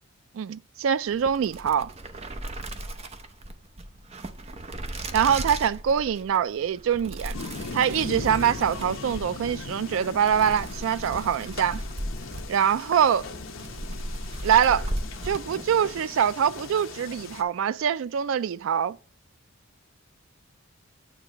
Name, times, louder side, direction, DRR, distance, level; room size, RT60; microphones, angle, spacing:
voice 1, 0.3-1.9 5.1-7.4 7.7-11.8 12.5-13.3 14.4-14.9 15.2-19.0, right 8 dB, 65° right, 0.3 m, -24 dB
sound 1, 1.1-16.0, right 1 dB, 30° right, 0.6 m, -37 dB
sound 2, 7.3-17.4, left 3 dB, 65° left, 0.8 m, -39 dB
8.9 x 3.3 x 5.0 m
head